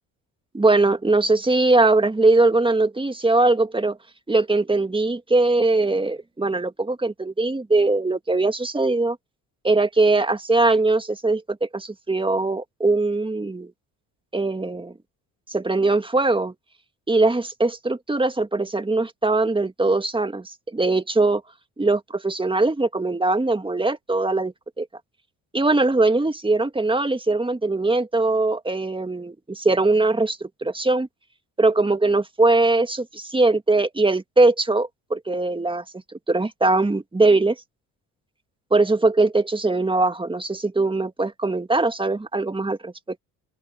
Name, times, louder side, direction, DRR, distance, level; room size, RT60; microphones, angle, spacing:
voice 1, 0.5-4.0 4.3-9.2 9.6-13.7 14.3-14.9 15.5-16.5 17.1-21.4 21.8-24.9 25.5-31.1 31.6-35.8 36.3-37.6 38.7-43.2, right 2 dB, 15° right, 1.8 m, -21 dB
open air
supercardioid pair, 60°, 37 cm